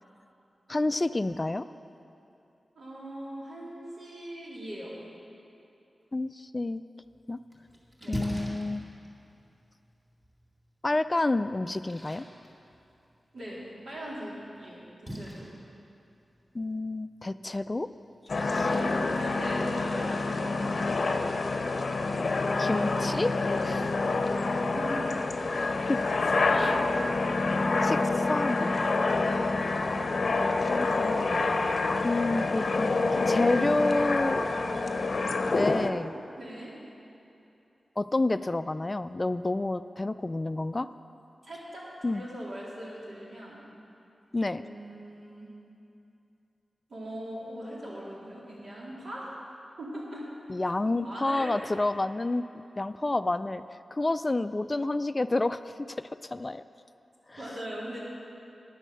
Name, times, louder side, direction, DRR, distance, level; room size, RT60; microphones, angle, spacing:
voice 1, 0.7-1.7 6.1-6.8 7.3-7.4 8.1-8.8 10.8-12.2 16.5-17.9 18.4-18.7 22.6-23.9 25.7-26.0 26.5-26.7 27.8-28.8 30.7-31.4 32.0-32.9 33.3-34.5 35.5-36.2 38.0-40.9 42.0-42.2 44.3-44.6 50.5-52.4 52.8-53.6 53.9-55.6 55.9-56.6 57.3-57.4, left 2 dB, 30° left, 13 dB, 0.3 m, -29 dB
voice 2, 2.8-4.9 8.0-8.2 13.3-15.4 18.3-21.0 22.6-23.0 24.7-25.2 25.4-25.6 26.1-27.1 29.2-29.6 36.4-36.7 41.4-43.6 44.4-45.5 46.9-49.4 49.8-50.2 50.9-51.5 57.4-58.0, right 1 dB, 70° right, -6 dB, 3.4 m, -40 dB
Splash splatter, 7.0-20.0, equal, 20° right, 2.2 m, -45 dB
sound 1, 18.3-35.9, left 3 dB, 65° left, 0.7 m, -27 dB
10.0 x 9.8 x 6.7 m, 2.7 s
cardioid pair, 50°, 0 cm